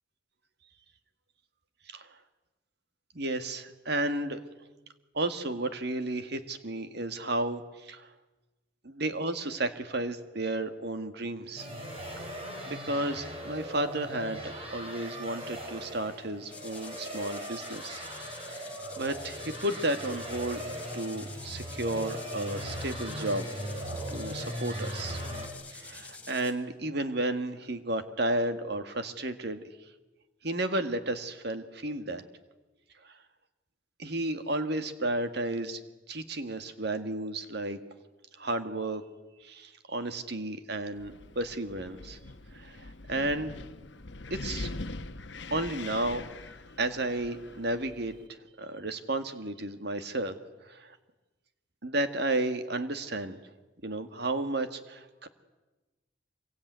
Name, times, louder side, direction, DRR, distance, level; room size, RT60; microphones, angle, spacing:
voice 1, 3.1-4.4 5.1-8.1 8.9-11.7 12.7-18.0 18.5-18.6 19.0-20.6 20.9-23.4 24.1-25.2 25.7-29.6 30.4-32.2 33.0-33.1 34.0-35.8 36.1-37.8 38.4-39.0 39.4-42.2 42.5-43.5 44.3-44.7 45.5-46.2 46.8-48.1 48.6-50.4 50.6-51.0 51.8-53.4 53.8-55.3, right 1 dB, 55° right, 9 dB, 1.9 m, -32 dB
sound 1, 11.6-25.5, equal, 30° right, 5.3 m, -39 dB
sound 2, 16.5-26.5, left 4 dB, 5° left, 3.0 m, -47 dB
Wind, 41.0-48.3, left 2 dB, 60° left, 1.1 m, -42 dB
26.0 x 23.5 x 9.4 m, 1.1 s
head